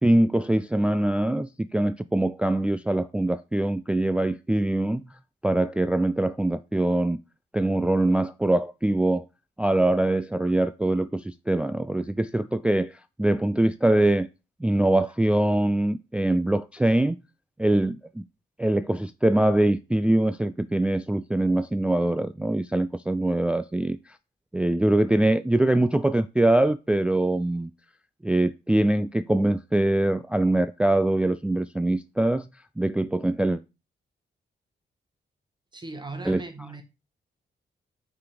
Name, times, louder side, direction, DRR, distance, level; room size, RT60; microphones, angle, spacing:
voice 1, 0.0-5.0 5.4-7.2 7.5-9.3 9.6-14.3 14.6-17.2 17.6-18.2 18.6-24.0 24.5-27.7 28.2-32.5 32.8-33.6 36.3-36.4, right 1 dB, 5° right, 0.3 m, -23 dB
voice 2, 35.7-36.8, right 3 dB, 25° right, 1.4 m, -38 dB
5.7 x 3.9 x 5.0 m
cardioid pair, 80°, 19 cm